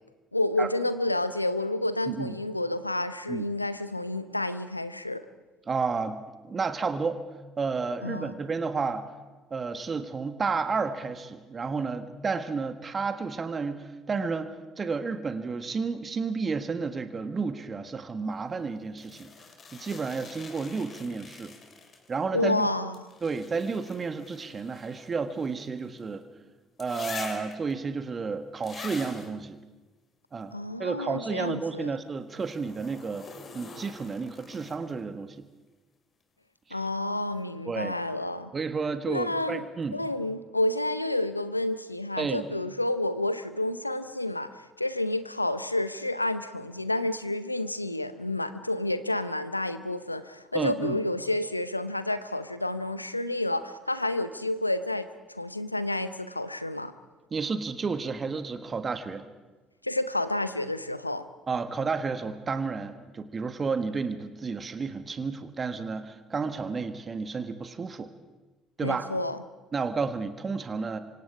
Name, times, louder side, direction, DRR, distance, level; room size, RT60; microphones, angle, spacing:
voice 1, 0.3-5.2 8.0-8.3 22.3-23.1 30.5-32.0 36.7-38.5 39.1-39.6 39.9-56.9 59.8-61.2 68.8-69.4, left 1 dB, 90° left, 13 dB, 0.8 m, -30 dB
voice 2, 2.1-2.4 3.3-3.4 5.7-7.2 7.6-9.1 9.5-14.5 14.8-19.3 19.8-21.5 22.1-22.7 23.2-26.2 26.8-29.6 30.3-30.5 30.8-33.3 33.5-35.4 36.7-36.8 37.6-37.9 38.5-40.0 42.2-42.4 50.5-51.0 57.3-59.2 61.5-68.1 68.8-69.1 69.7-71.0, right 4 dB, 30° right, 10 dB, 1.5 m, -31 dB
sound 1, 19.0-22.2 22.9-26.1 26.8-27.7 28.6-29.3 32.3-35.0 36.9-37.0, left 4 dB, 40° left, 3.9 m, -45 dB
28.0 x 25.0 x 4.9 m, 1.2 s
figure-of-eight pair, 50°, 0 cm